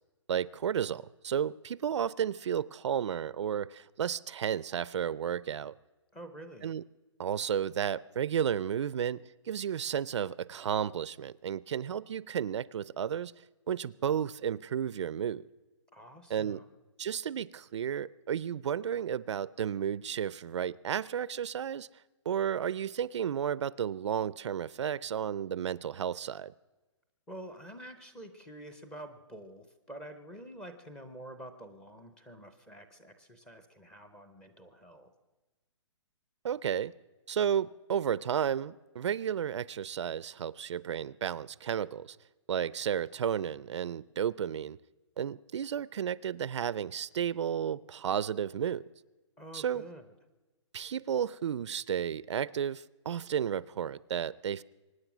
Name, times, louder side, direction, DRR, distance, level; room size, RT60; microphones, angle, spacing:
voice 1, 0.3-5.7 6.6-6.8 7.2-13.3 13.7-15.4 16.3-16.6 17.0-21.9 22.3-26.5 36.4-36.9 37.3-42.2 42.5-44.8 45.2-48.9 49.5-49.8 50.7-54.6, right 8 dB, 65° right, 0.4 m, -32 dB
voice 2, 6.1-6.7 15.9-16.7 27.3-35.1 49.4-50.1, right 1 dB, 5° left, 0.5 m, -48 dB
24.0 x 9.7 x 6.0 m
hypercardioid pair, 170°, 16 cm